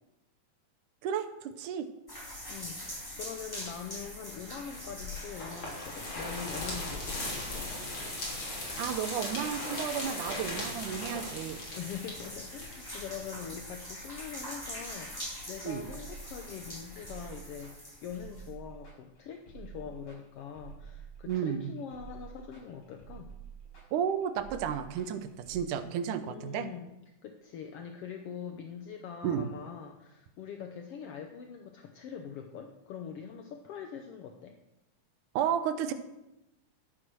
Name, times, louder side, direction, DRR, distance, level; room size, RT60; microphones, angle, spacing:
voice 1, 1.0-1.9 8.8-11.6 15.6-15.8 21.3-21.7 23.9-26.7 29.2-29.5 35.4-35.9, right 8 dB, 80° right, 10 dB, 2.3 m, -32 dB
sound 1, 2.1-18.5, equal, 5° left, 3.1 m, -44 dB
voice 2, 2.5-7.7 11.7-23.3 26.2-26.9 27.2-34.6, left 7 dB, 75° left, 4 dB, 1.4 m, -43 dB
sound 2, 4.7-13.5, left 2 dB, 40° left, 3.8 m, -39 dB
sound 3, 15.8-25.6, right 7 dB, 55° left, 7.2 m, -49 dB
12.5 x 8.5 x 6.2 m, 0.91 s
omnidirectional pair, 3.7 m